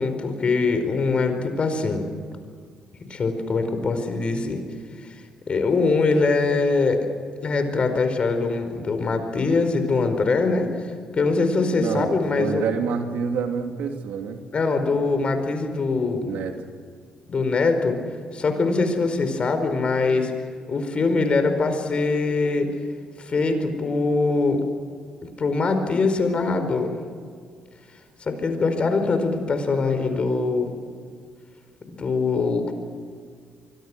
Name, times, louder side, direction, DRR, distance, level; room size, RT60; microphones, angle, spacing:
voice 1, 0.0-2.0 3.1-4.6 5.0-5.1 5.5-7.0 7.4-10.7 11.1-12.6 14.5-16.3 17.3-18.0 18.3-20.3 20.7-22.7 23.2-24.6 25.4-26.9 28.2-30.7 31.9-32.7, left 3 dB, 45° left, 8 dB, 4.8 m, -22 dB
voice 2, 11.7-14.4 16.3-16.6 30.0-30.2, right 6 dB, 80° right, 5 dB, 2.6 m, -28 dB
25.0 x 23.5 x 6.3 m, 2.1 s
supercardioid pair, 60°, 3 cm